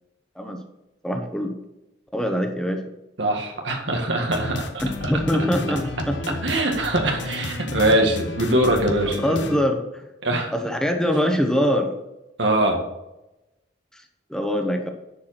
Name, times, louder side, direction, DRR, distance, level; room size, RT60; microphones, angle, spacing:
voice 1, 1.0-1.5 2.1-2.8 4.8-6.2 9.0-9.8 10.5-11.9 13.9-14.0 14.3-14.9, equal, 5° left, 4 dB, 1.0 m, -23 dB
voice 2, 3.2-5.1 6.4-9.2 10.2-10.5 12.4-12.8, right 1 dB, 90° right, 2 dB, 1.9 m, -22 dB
sound 1, 4.3-9.6, left 2 dB, 80° left, 1.1 m, -32 dB
10.0 x 4.9 x 5.9 m, 0.95 s
head